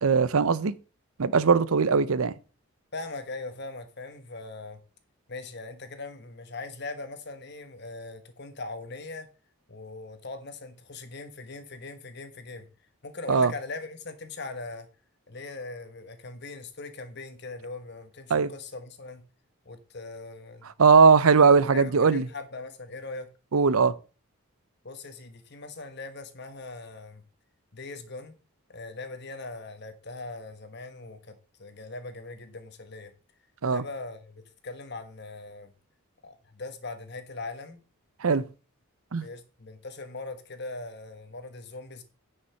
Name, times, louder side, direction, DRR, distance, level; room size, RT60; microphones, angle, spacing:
voice 1, 0.0-0.7 1.2-2.3 13.3-13.5 18.3-18.5 20.8-22.2 23.5-24.0 33.6-33.8 38.2-38.4 39.1-39.3, right 5 dB, 75° right, 0.6 m, -20 dB
voice 2, 2.9-4.8 5.3-9.3 9.7-12.7 13.0-14.9 15.3-19.2 19.6-20.7 21.7-23.3 24.8-27.2 27.7-28.4 28.7-33.1 33.7-35.7 36.2-37.8 39.2-42.0, left 3 dB, 50° left, 1.3 m, -40 dB
9.7 x 5.6 x 5.6 m
head